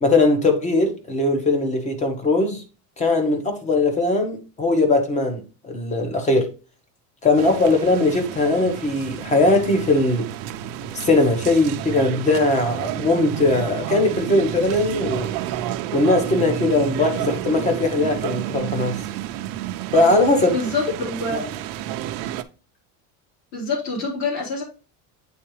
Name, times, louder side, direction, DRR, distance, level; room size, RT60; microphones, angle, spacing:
voice 1, 0.0-2.6 3.0-6.5 7.2-10.3 10.9-15.3 15.9-19.0 19.9-20.6, left 2 dB, 20° left, 1.1 m, -20 dB
sound 1, 7.4-22.4, right 12 dB, 60° right, 0.6 m, -30 dB
voice 2, 20.5-21.4 23.5-24.6, left 3 dB, 45° left, 3.8 m, -26 dB
8.6 x 3.9 x 3.1 m
cardioid pair, 175°, 39 cm